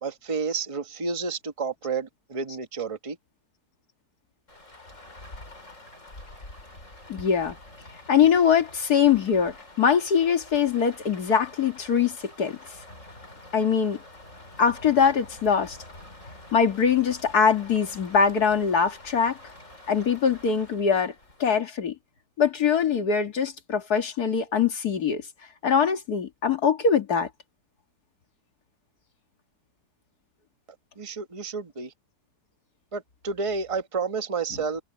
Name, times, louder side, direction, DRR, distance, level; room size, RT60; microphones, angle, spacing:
voice 1, 0.0-3.2 31.0-31.9 32.9-34.8, right 5 dB, 20° right, 1.1 m, -30 dB
Rain, 4.5-21.5, left 1 dB, 50° left, 5.6 m, -47 dB
voice 2, 7.1-7.6 8.1-12.6 13.5-14.0 14.6-15.8 16.5-19.4 19.9-21.1 21.4-21.9 22.4-25.2 25.6-27.3, left 6 dB, 70° left, 2.4 m, -22 dB
omnidirectional pair, 1.7 m